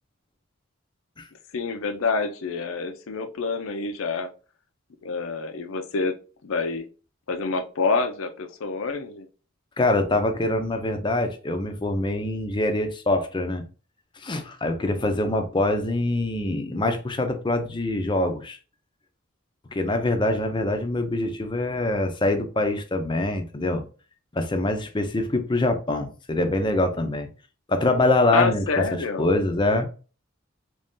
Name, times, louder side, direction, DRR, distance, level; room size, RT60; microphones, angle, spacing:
voice 1, 1.5-4.3 5.0-6.1 6.4-6.9 7.3-9.3 28.3-29.3, left 4 dB, 75° left, 0.5 m, -27 dB
voice 2, 9.8-13.6 14.2-18.6 19.7-23.8 24.3-27.3 27.7-28.7 28.9-29.9, left 2 dB, 25° left, 0.5 m, -24 dB
3.1 x 2.6 x 3.5 m
head